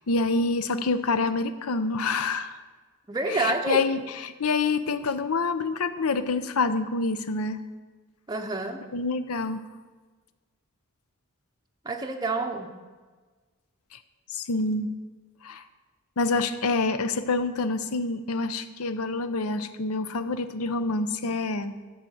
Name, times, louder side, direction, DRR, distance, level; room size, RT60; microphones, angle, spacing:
voice 1, 0.0-2.6 3.3-7.6 8.9-9.6 13.9-14.0 14.3-15.0 15.4-15.6 16.2-21.7, left 3 dB, 80° left, 11 dB, 0.7 m, -27 dB
voice 2, 3.1-3.8 8.3-8.8 11.8-12.8, right 2 dB, 20° right, 3 dB, 0.6 m, -28 dB
12.5 x 4.9 x 7.8 m, 1.4 s
head